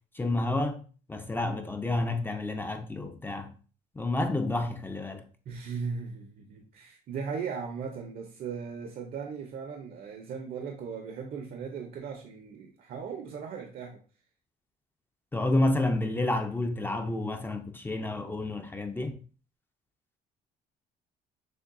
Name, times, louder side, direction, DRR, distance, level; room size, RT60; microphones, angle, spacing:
voice 1, 0.1-0.8 1.1-3.6 4.0-5.2 15.3-19.1, left 2 dB, 10° left, 0.5 m, -29 dB
voice 2, 5.5-14.0, right 6 dB, 55° right, 0.7 m, -38 dB
6.4 x 2.2 x 2.6 m
cardioid pair, 110°, 17 cm